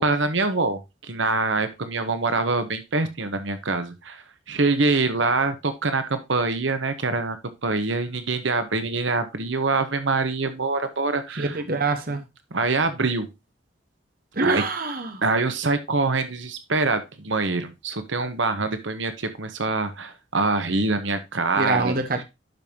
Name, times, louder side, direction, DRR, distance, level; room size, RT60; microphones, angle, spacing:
voice 1, 0.0-11.6 12.5-13.3 14.4-14.6 15.2-22.0, right 3 dB, 75° right, 1.2 m, -25 dB
voice 2, 11.4-12.2 14.3-15.2 21.6-22.2, right 3 dB, 50° right, 1.1 m, -25 dB
11.5 x 5.4 x 2.9 m
head